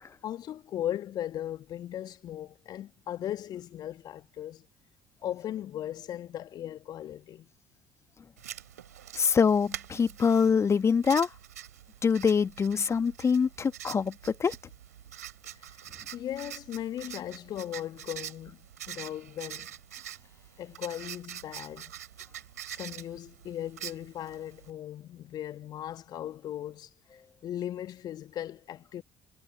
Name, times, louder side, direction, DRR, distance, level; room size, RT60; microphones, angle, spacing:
voice 1, 0.2-4.7 5.2-7.5 15.6-15.8 16.1-19.7 20.6-21.9 22.7-26.9 27.4-29.0, left 11 dB, 50° left, 2.1 m, -38 dB
Writing, 8.4-24.7, right 11 dB, 75° right, 3.1 m, -45 dB
voice 2, 9.2-11.3 12.0-14.6, left 6 dB, 30° left, 1.9 m, -24 dB
figure-of-eight pair, 50°, 9 cm